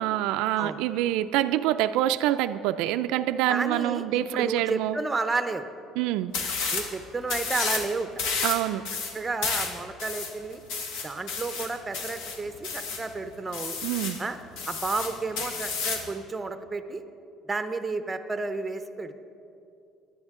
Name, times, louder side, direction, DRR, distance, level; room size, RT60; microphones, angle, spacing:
voice 1, 0.0-5.0 6.0-6.3 8.4-8.8 13.8-14.2, right 13 dB, 85° right, 11 dB, 0.3 m, -26 dB
voice 2, 3.5-5.7 6.7-8.3 9.1-10.6 11.0-13.8 14.2-14.4 14.7-17.0 17.5-19.1, right 3 dB, 15° right, 9 dB, 0.6 m, -31 dB
sound 1, 6.3-6.9 7.3-7.9 8.2-13.1 13.5-14.2 14.6-16.1, left 4 dB, 80° left, 1.5 m, -31 dB
16.0 x 11.0 x 3.6 m, 2.7 s
cardioid pair, 150°, 0 cm